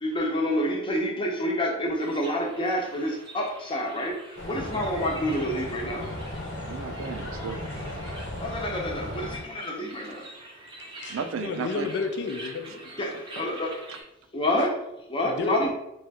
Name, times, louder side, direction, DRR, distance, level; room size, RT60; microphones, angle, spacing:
voice 1, 0.0-6.1 8.4-10.3 13.0-13.8 14.3-14.8 15.1-15.7, left 1 dB, 25° left, -1 dB, 0.7 m, -28 dB
sound 1, 2.0-14.0, right 1 dB, 25° right, 0.6 m, -46 dB
sound 2, 4.4-9.4, left 1 dB, 80° left, 1.2 m, -35 dB
voice 2, 6.6-7.6 11.0-11.9 13.4-13.5 13.9-14.0, right 5 dB, 90° right, 8 dB, 0.4 m, -34 dB
voice 3, 11.0-12.9 15.2-15.6, left 4 dB, 60° left, 6 dB, 0.4 m, -32 dB
2.7 x 2.3 x 4.1 m, 0.87 s
head